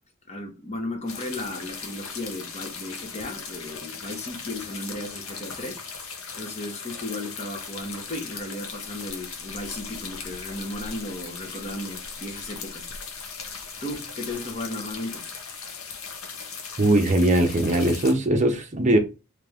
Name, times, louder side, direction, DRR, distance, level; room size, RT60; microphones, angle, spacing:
voice 1, 0.3-5.8 6.3-12.9 13.8-15.3, left 1 dB, 30° left, 0.9 m, -35 dB
sound 1, 1.1-18.1, left 5 dB, 70° left, 0.9 m, -38 dB
voice 2, 16.8-19.0, right 1 dB, 35° right, 0.7 m, -20 dB
3.4 x 3.2 x 3.5 m
head